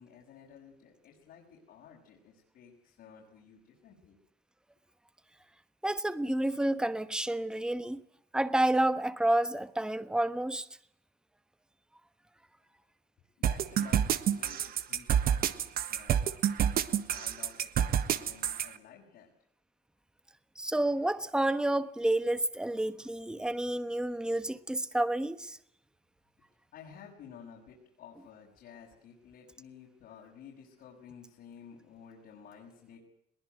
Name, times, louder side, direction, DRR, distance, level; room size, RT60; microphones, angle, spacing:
voice 1, 0.0-4.2 12.7-12.8 13.4-16.3 16.9-19.3 26.7-33.0, left 7 dB, 70° left, 6.7 m, -53 dB
voice 2, 5.8-8.0 8.3-10.7 20.6-25.6, right 1 dB, 5° right, 1.2 m, -29 dB
sound 1, 13.4-18.7, right 9 dB, 60° right, 1.5 m, -28 dB
22.0 x 20.0 x 9.4 m
cardioid pair, 110°, 17 cm